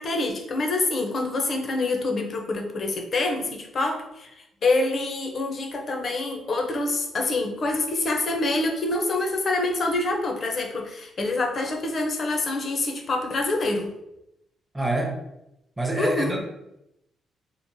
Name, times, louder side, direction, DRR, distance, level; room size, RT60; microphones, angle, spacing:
voice 1, 0.0-13.9 16.0-16.4, left 2 dB, 45° left, 3 dB, 0.5 m, -26 dB
voice 2, 14.7-15.2 15.8-16.4, right 2 dB, 10° right, 1 dB, 0.6 m, -26 dB
2.9 x 2.0 x 2.6 m, 0.86 s
cardioid pair, 90°, 0 cm